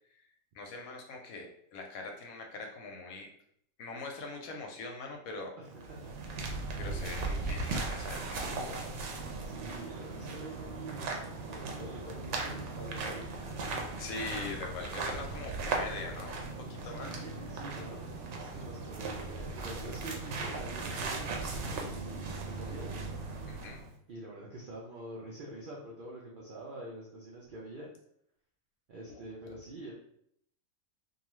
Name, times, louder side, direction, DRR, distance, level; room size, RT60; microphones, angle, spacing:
voice 1, 0.5-3.3 3.8-5.5 6.8-8.9 13.9-17.2 22.6-22.7 23.5-23.8 29.1-29.2, left 3 dB, 85° left, 2 dB, 1.0 m, -42 dB
sound 1, 5.6-23.9, right 3 dB, 65° right, 0.8 m, -38 dB
voice 2, 5.6-6.1 6.9-7.2 9.4-13.2 16.8-18.1 18.5-23.3 24.1-27.9 28.9-29.9, right 2 dB, 85° right, -4 dB, 0.4 m, -46 dB
sound 2, 9.1-23.9, equal, 30° left, 0.6 m, -56 dB
2.6 x 2.3 x 3.0 m, 0.69 s
omnidirectional pair, 1.5 m